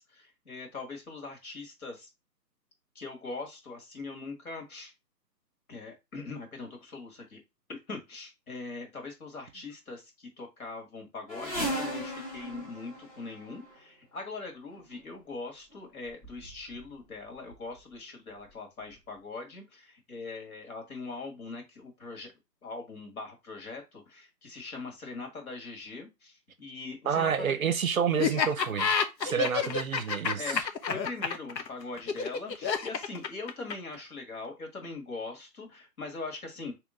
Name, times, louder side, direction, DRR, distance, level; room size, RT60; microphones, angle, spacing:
voice 1, 0.0-2.1 3.0-4.9 5.7-7.4 7.7-22.3 22.6-27.6 29.2-29.7 30.4-30.6 30.9-36.7, left 3 dB, 60° left, 1.8 m, -41 dB
sound 1, 11.3-13.8 14.8-15.0 15.7-15.8 16.1-16.9 17.3-17.8 18.5-18.6 18.9-19.0, right 1 dB, 25° left, 1.0 m, -37 dB
voice 2, 27.1-28.9 29.2-30.7, right 7 dB, 55° right, 0.6 m, -29 dB
Laughter, 28.2-34.0, left 6 dB, 85° left, 0.9 m, -29 dB
3.2 x 3.0 x 3.7 m
hypercardioid pair, 165°, 50 cm